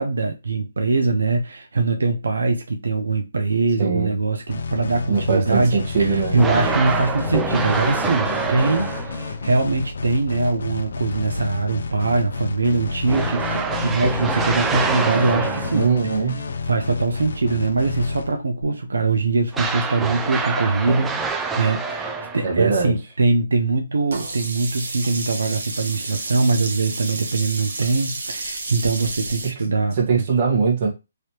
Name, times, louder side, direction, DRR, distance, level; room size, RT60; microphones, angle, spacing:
voice 1, 0.0-15.9 16.6-30.3, right 3 dB, 85° right, 0.5 m, -22 dB
voice 2, 3.8-4.1 5.1-6.4 15.7-16.4 22.4-22.9 30.0-30.9, right 5 dB, 40° right, 1.2 m, -21 dB
sound 1, 4.5-18.6, left 5 dB, 65° left, 0.5 m, -30 dB
sound 2, 6.4-9.3 13.1-16.0 19.5-22.6, right 4 dB, 10° right, 0.3 m, -26 dB
Sink (filling or washing), 24.1-29.5, right 3 dB, 65° right, 1.0 m, -31 dB
3.2 x 2.9 x 2.9 m
hypercardioid pair, 155°, 0 cm